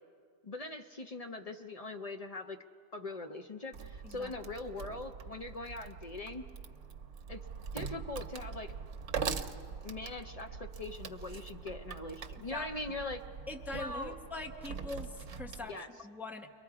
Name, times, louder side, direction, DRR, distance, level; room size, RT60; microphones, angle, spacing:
voice 1, 0.4-2.6 2.9-6.5 7.3-7.4 7.7-8.7 9.8-13.2 13.7-14.1 15.7-15.9, left 2 dB, 65° left, 5 dB, 0.3 m, -41 dB
Wood, 3.7-15.7, right 6 dB, 55° right, 1.0 m, -43 dB
voice 2, 12.4-12.7 13.5-16.5, left 2 dB, ahead, 5 dB, 0.7 m, -43 dB
30.0 x 23.5 x 4.8 m, 2.4 s
omnidirectional pair, 1.7 m